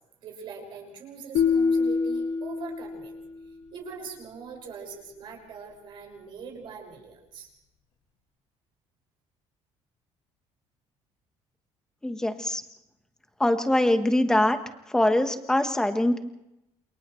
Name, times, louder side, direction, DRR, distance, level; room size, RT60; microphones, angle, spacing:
voice 1, 0.2-3.2 3.7-7.5, right 5 dB, 50° right, 1 dB, 5.9 m, -42 dB
sound 1, 1.3-3.5, left 5 dB, 65° left, 1.9 m, -26 dB
voice 2, 12.0-12.6 13.4-14.6 14.9-16.2, left 1 dB, 5° left, 7 dB, 1.3 m, -23 dB
29.0 x 28.5 x 3.2 m, 0.88 s
cardioid pair, 170°, 11 cm